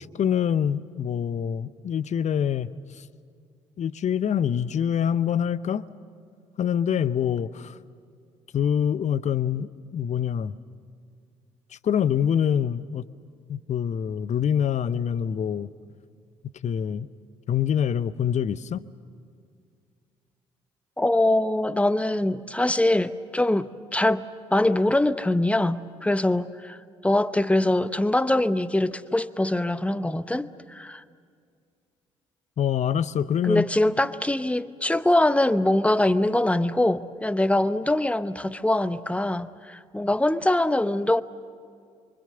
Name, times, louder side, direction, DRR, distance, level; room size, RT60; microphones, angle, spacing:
voice 1, 0.2-2.7 3.8-5.9 6.6-7.8 8.5-10.6 11.8-13.0 13.5-15.7 16.6-17.1 17.5-18.8 32.6-33.6, left 8 dB, 45° left, 0.8 m, -25 dB
voice 2, 21.0-24.2 24.5-26.8 27.0-31.0 33.4-41.2, left 1 dB, 10° left, 0.9 m, -23 dB
27.0 x 24.5 x 6.8 m
figure-of-eight pair, 45°, 16 cm